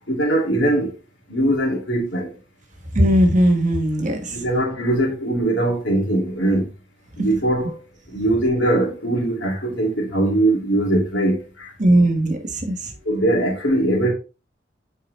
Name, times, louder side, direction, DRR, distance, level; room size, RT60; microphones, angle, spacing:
voice 1, 0.1-0.9 1.3-2.3 4.3-6.7 7.2-7.8 8.1-11.7 13.1-14.1, right 1 dB, 75° left, 2.3 m, -21 dB
voice 2, 2.9-4.4 11.8-12.9, right 1 dB, 40° right, 1.2 m, -18 dB
7.2 x 4.5 x 3.1 m
head